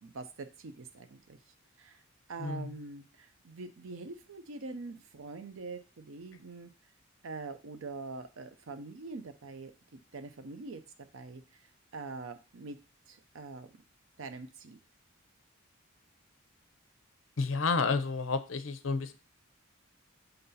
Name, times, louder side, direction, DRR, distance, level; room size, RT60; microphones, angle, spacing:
voice 1, 0.0-2.0 2.3-6.7 7.2-10.8 11.1-12.8 13.1-13.7 14.2-14.8, right 3 dB, 65° right, 9 dB, 0.5 m, -44 dB
voice 2, 17.4-19.2, left 4 dB, 65° left, 11 dB, 0.6 m, -30 dB
6.6 x 3.9 x 4.0 m, 0.32 s
head